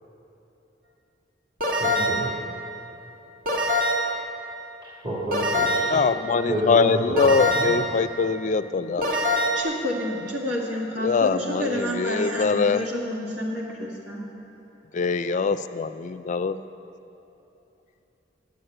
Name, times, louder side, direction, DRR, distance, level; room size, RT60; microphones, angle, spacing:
sound 1, 1.6-2.3 3.5-4.2 5.3-6.1 7.2-7.9 9.0-9.6, equal, 50° right, 1.5 m, -24 dB
voice 1, 1.8-2.3 5.0-5.9 6.5-7.8, equal, 35° right, -9 dB, 2.6 m, -29 dB
voice 2, 5.9-9.0 11.0-12.8 14.9-16.6, left 4 dB, 40° left, 11 dB, 0.4 m, -23 dB
voice 3, 9.5-14.3, left 1 dB, 85° right, -3 dB, 1.8 m, -29 dB
11.0 x 8.0 x 7.8 m, 3.0 s
head